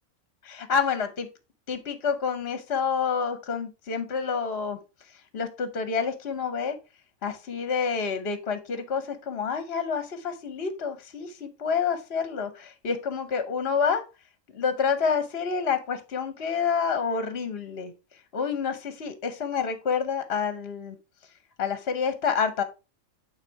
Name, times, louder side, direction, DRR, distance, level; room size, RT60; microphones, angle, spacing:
voice 1, 0.4-1.3 1.7-4.8 5.3-6.8 7.2-14.0 14.5-17.9 18.3-21.0 21.6-22.6, left 6 dB, 55° left, 1.0 m, -28 dB
8.8 x 3.8 x 4.5 m
omnidirectional pair, 1.3 m